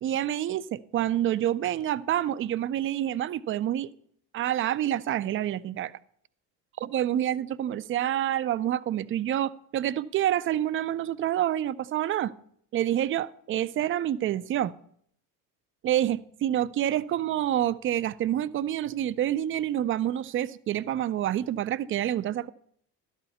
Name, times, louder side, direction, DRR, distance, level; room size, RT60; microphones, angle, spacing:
voice 1, 0.0-3.9 4.3-5.9 6.8-12.3 12.7-14.7 15.8-22.5, right 11 dB, 30° right, 0.4 m, -27 dB
12.5 x 4.3 x 8.0 m
hypercardioid pair, 55°, 47 cm